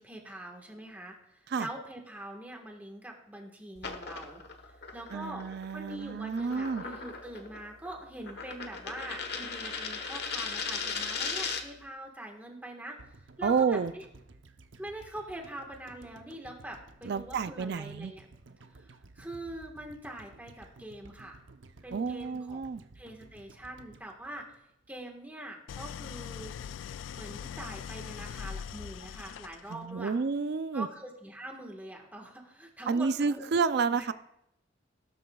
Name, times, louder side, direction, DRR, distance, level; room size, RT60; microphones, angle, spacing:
voice 1, 0.0-4.4 4.9-5.5 5.7-13.0 13.4-14.0 14.8-18.3 18.8-21.4 21.8-22.6 22.9-24.5 24.9-26.6 27.1-30.1 30.7-33.4 33.9-34.1, right 1 dB, 10° right, 1 dB, 1.5 m, -43 dB
sound 1, 3.8-11.8, left 5 dB, 55° left, 1.3 m, -38 dB
voice 2, 5.1-6.8 13.4-13.9 17.0-18.1 21.9-22.8 29.7-30.9 32.9-34.1, right 5 dB, 55° right, 13 dB, 0.4 m, -30 dB
sound 2, 13.0-25.2 25.5-25.6, right 3 dB, 80° right, 0.8 m, -55 dB
Idling, 25.7-29.9, left 8 dB, 80° left, 0.3 m, -41 dB
17.0 x 12.5 x 2.3 m, 0.82 s
head